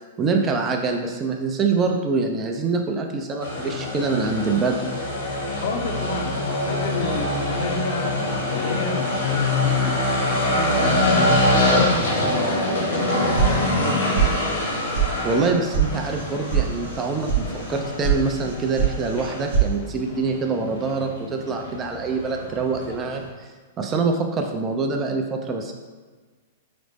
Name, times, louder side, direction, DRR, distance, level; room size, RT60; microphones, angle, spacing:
voice 1, 0.2-4.8 15.2-23.5 23.8-25.7, right 4 dB, 25° right, 3 dB, 0.5 m, -25 dB
sound 1, 3.4-23.3, left 1 dB, 90° left, 1.2 m, -25 dB
voice 2, 5.6-12.6 13.3-14.5, left 3 dB, 65° left, 3 dB, 0.6 m, -31 dB
sound 2, 13.4-13.9 14.1-14.7 14.9-15.1 15.4-15.9 16.1-16.6 16.9-17.4 17.7-18.2 18.4-18.9 19.2-19.7, right 9 dB, 70° right, 0.7 m, -21 dB
4.9 x 2.1 x 3.3 m, 1.4 s
hypercardioid pair, 135°, 0 cm